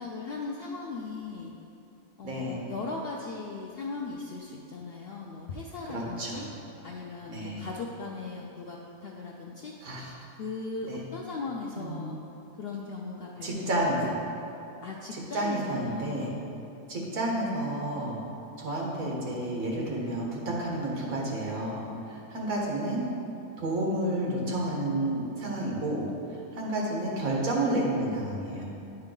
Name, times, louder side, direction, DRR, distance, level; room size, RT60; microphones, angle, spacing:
voice 1, 0.0-1.5 2.2-6.5 6.8-9.7 10.4-12.2 12.6-14.1 14.8-16.3 17.3-17.6, left 3 dB, 70° left, -2 dB, 0.5 m, -38 dB
voice 2, 2.2-2.6 5.9-6.4 7.3-7.7 9.8-10.1 10.9-11.0 11.7-12.0 13.4-14.2 15.1-16.3 16.9-18.2 18.6-23.0 23.6-26.0 26.6-28.6, right 1 dB, 70° right, -3 dB, 1.7 m, -30 dB
9.6 x 4.4 x 3.8 m, 2.8 s
omnidirectional pair, 1.5 m